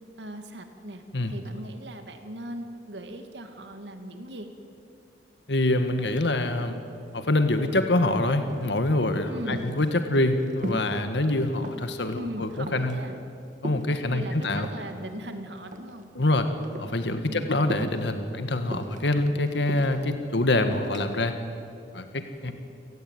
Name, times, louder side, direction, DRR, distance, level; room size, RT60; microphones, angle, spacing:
voice 1, 0.2-4.5 9.3-9.7 12.1-13.1 14.1-16.1 17.3-17.6 22.5-22.6, right 1 dB, 85° right, 6 dB, 2.5 m, -39 dB
voice 2, 5.5-6.9 7.1-13.0 13.6-14.7 16.1-16.5 16.8-21.4 21.9-22.5, left 2 dB, 80° left, 8 dB, 1.7 m, -25 dB
sound 1, 7.1-7.2 7.4-8.1 8.5-8.9 9.2-11.0 11.3-12.0 12.4-13.0 13.6-14.9 15.6-16.4 16.6-17.0 17.7-18.1 18.7-20.1 20.7-21.1, right 1 dB, 45° right, 2.1 m, -38 dB
29.5 x 18.5 x 9.3 m, 2.5 s
head